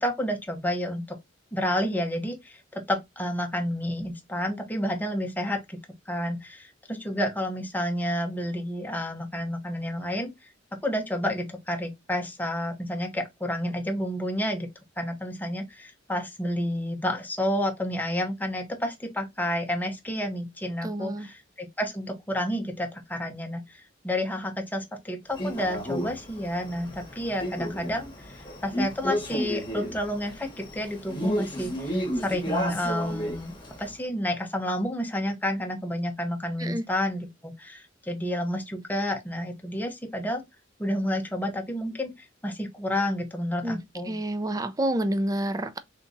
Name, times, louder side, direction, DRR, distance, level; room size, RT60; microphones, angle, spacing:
voice 1, 0.0-1.2 1.5-5.8 6.1-10.3 10.8-14.7 15.0-40.4 40.8-42.1 42.4-44.2, left 1 dB, 10° left, 0.9 m, -30 dB
voice 2, 20.8-21.3 36.6-36.8 43.6-43.8 44.1-45.8, right 1 dB, 20° right, 0.4 m, -28 dB
Male speech man speaking, 25.4-33.9, equal, 25° left, 1.4 m, -32 dB
3.6 x 2.8 x 3.9 m
head